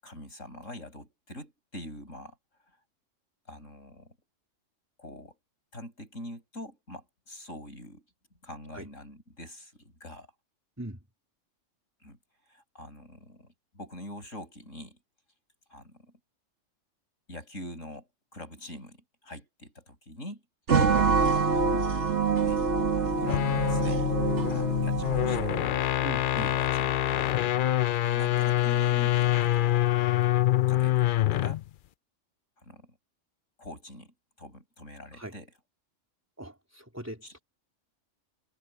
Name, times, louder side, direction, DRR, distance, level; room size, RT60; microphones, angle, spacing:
voice 1, 0.0-2.4 3.5-4.2 5.0-5.4 5.7-8.1 8.4-10.3 12.0-12.2 12.5-15.0 15.7-16.1 17.3-20.4 21.5-22.0 22.3-22.6 22.9-24.1 24.5-25.6 26.4-27.4 28.0-29.9 30.7-31.6 32.6-33.0 33.6-35.5 37.2-37.3, left 1 dB, 85° left, 8.6 m, -44 dB
sound 1, 20.7-25.8, right 5 dB, 65° right, 1.8 m, -26 dB
sound 2, 23.2-31.6, left 14 dB, 65° left, 0.5 m, -25 dB
voice 2, 26.0-26.6 35.1-35.4 36.4-37.4, right 1 dB, 10° right, 3.5 m, -40 dB
omnidirectional pair, 1.3 m